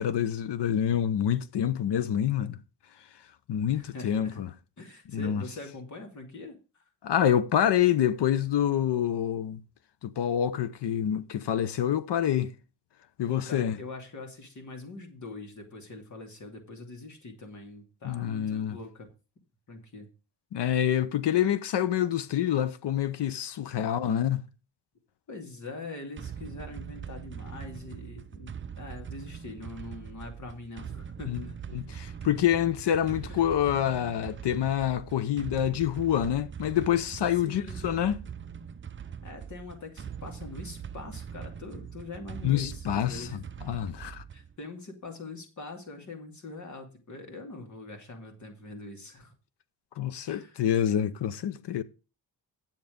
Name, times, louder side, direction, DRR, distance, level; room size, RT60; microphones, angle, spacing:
voice 1, 0.0-2.6 3.5-4.5 5.1-5.4 7.0-9.6 10.0-12.5 13.2-13.8 18.0-18.8 20.5-24.5 31.3-31.4 31.7-38.2 42.4-43.3 43.6-44.2 50.0-51.8, left 10 dB, 85° left, 0.9 m, -27 dB
voice 2, 3.7-4.4 4.8-6.6 13.3-19.1 19.7-20.1 25.3-31.6 33.2-33.6 37.4-37.8 39.2-43.6 44.3-49.3 50.3-50.6, left 3 dB, 45° left, 2.7 m, -43 dB
sound 1, 26.2-44.6, right 7 dB, 30° right, 0.5 m, -42 dB
9.7 x 7.4 x 5.2 m
wide cardioid pair, 150°, 40 cm